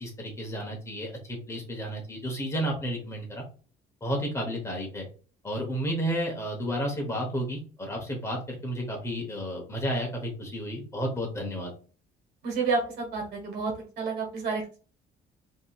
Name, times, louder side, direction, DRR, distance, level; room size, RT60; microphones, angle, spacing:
voice 1, 0.0-3.4 4.0-5.1 5.4-11.7, equal, 15° left, 0 dB, 0.9 m, -32 dB
voice 2, 12.4-14.6, right 4 dB, 70° right, 0 dB, 1.3 m, -30 dB
2.8 x 2.7 x 2.3 m, 0.38 s
cardioid pair, 135°, 17 cm